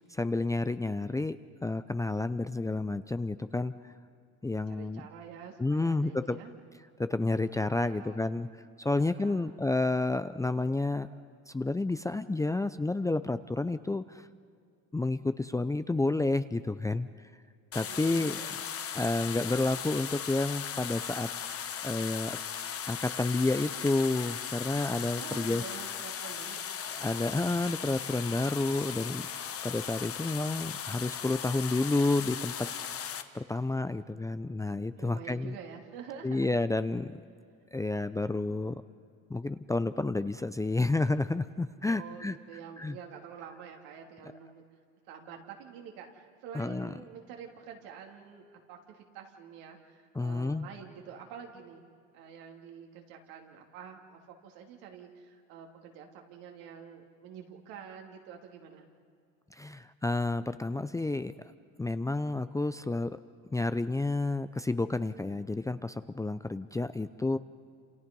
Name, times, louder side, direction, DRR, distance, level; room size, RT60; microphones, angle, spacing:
voice 1, 0.1-1.4 1.6-3.9 4.4-5.1 5.6-6.4 7.0-8.5 8.8-11.1 11.5-14.3 14.9-17.1 17.7-18.5 18.9-21.3 21.8-22.4 22.9-25.6 26.9-29.2 29.6-33.0 33.3-35.5 36.2-37.1 37.7-38.8 39.3-42.4 42.8-43.0 46.5-46.9 50.1-50.7 59.5-61.3 61.8-63.2 63.5-67.4, left 2 dB, 10° left, 12 dB, 0.6 m, -30 dB
voice 2, 4.4-6.6 7.9-8.3 9.0-9.6 17.9-18.5 25.2-26.6 33.9-34.5 35.0-36.7 41.9-44.6 45.1-51.9 52.1-58.9, right 7 dB, 75° right, 2 dB, 3.1 m, -48 dB
sound 1, 17.7-33.2, left 8 dB, 40° left, 1.4 m, -38 dB
28.5 x 27.5 x 5.4 m, 2.3 s
supercardioid pair, 95°, 37 cm